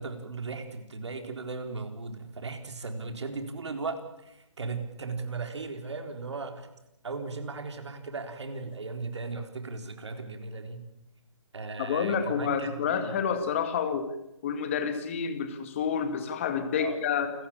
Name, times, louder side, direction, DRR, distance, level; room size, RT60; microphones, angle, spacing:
voice 1, 0.0-6.7 7.0-10.8 11.5-13.2 16.8-17.1, right 3 dB, 60° right, 6 dB, 4.0 m, -37 dB
voice 2, 11.8-14.1 14.4-17.3, left 7 dB, 25° left, 8 dB, 2.2 m, -29 dB
28.5 x 15.0 x 8.8 m, 0.87 s
hypercardioid pair, 165°, 17 cm